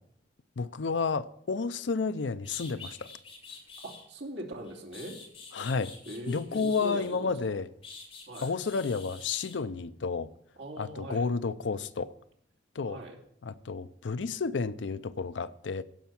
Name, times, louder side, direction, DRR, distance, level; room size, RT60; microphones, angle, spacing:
voice 1, 0.6-3.1 5.5-5.9 6.3-7.7 8.4-10.3 10.8-12.1 12.7-13.0 13.4-15.8, left 4 dB, 80° left, 0.5 m, -31 dB
sound 1, 2.4-4.0 4.6-7.3 7.8-9.6, left 4 dB, 35° left, 5.1 m, -47 dB
voice 2, 3.8-5.2 6.1-7.6 8.3-8.5 10.6-11.2 12.8-13.2, right 1 dB, 75° right, 2.6 m, -41 dB
16.5 x 5.7 x 5.9 m
head